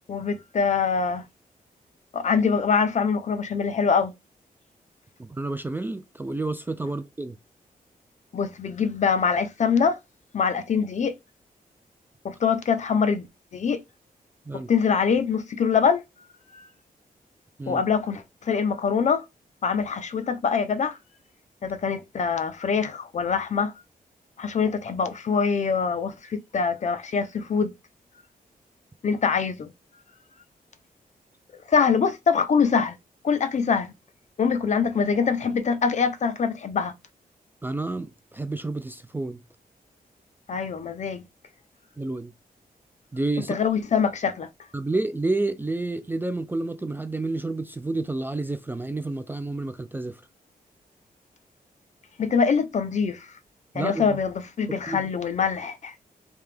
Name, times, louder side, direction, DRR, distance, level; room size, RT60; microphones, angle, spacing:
voice 1, 0.1-1.2 2.1-4.1 8.3-10.0 10.3-11.1 12.2-13.3 13.5-13.8 14.7-16.0 16.5-16.6 17.7-19.2 19.6-21.0 21.6-23.7 24.4-27.7 29.0-29.7 31.7-33.0 33.2-33.9 34.4-36.9 40.5-41.2 43.5-44.5 52.2-53.3 53.7-55.9, left 6 dB, 50° left, 0.6 m, -24 dB
voice 2, 5.2-7.4 14.5-14.7 17.6-17.8 37.6-39.4 42.0-42.3 43.1-43.5 44.7-50.2 53.7-54.2 54.9-55.1, right 2 dB, 15° right, 0.3 m, -30 dB
3.5 x 2.8 x 3.3 m
wide cardioid pair, 125°, 16 cm